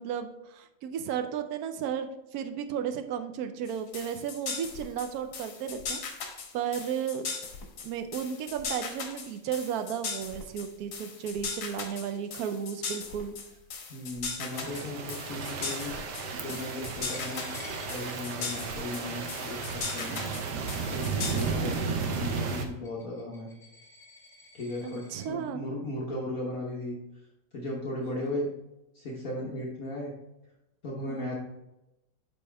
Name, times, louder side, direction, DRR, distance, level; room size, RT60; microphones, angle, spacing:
voice 1, 0.0-6.2 6.5-7.3 7.8-13.3 16.3-16.6 24.8-25.6 28.0-28.3 31.1-31.3, right 8 dB, 80° right, 8 dB, 0.8 m, -34 dB
sound 1, 3.7-21.8, left 5 dB, 70° left, 1.9 m, -38 dB
voice 2, 13.9-16.0 16.4-17.5 17.9-20.2 20.9-23.5 24.5-27.0 27.5-28.5 28.9-30.1 30.8-31.4, left 1 dB, 50° left, -3 dB, 1.4 m, -36 dB
sound 2, 14.5-22.7, right 4 dB, 65° right, 1.2 m, -34 dB
Coin (dropping), 17.1-25.3, left 2 dB, ahead, 1.0 m, -53 dB
8.4 x 5.5 x 3.4 m, 0.91 s
omnidirectional pair, 2.2 m